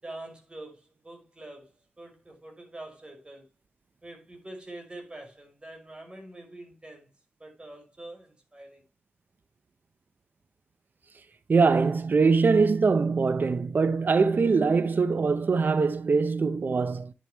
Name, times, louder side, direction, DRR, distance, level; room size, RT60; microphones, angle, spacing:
voice 1, 0.0-1.7 2.0-3.5 4.0-7.1 7.4-8.8, right 1 dB, 25° right, 5.6 m, -45 dB
voice 2, 11.5-17.1, right 4 dB, 55° right, 0.9 m, -23 dB
10.0 x 7.5 x 3.1 m
cardioid pair, 70°, 4 cm